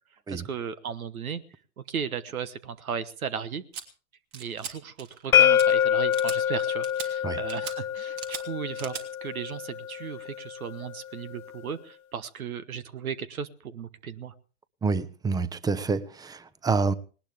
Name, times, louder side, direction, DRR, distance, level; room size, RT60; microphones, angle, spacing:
voice 1, 0.3-1.4 1.8-3.6 4.3-14.3, right 7 dB, 90° right, 1.3 m, -36 dB
sound 1, 3.7-3.8 4.3-4.7 5.0-5.3 5.6-5.7 6.1-6.4 6.8-7.1 7.5-7.8 8.2-8.4 8.8-9.0, right 7 dB, 50° right, 3.1 m, -38 dB
sound 2, 5.3-11.1, left 9 dB, 90° left, 1.0 m, -26 dB
voice 2, 14.8-16.9, right 4 dB, 10° right, 0.7 m, -27 dB
19.5 x 19.0 x 3.5 m
hypercardioid pair, 120°, 41 cm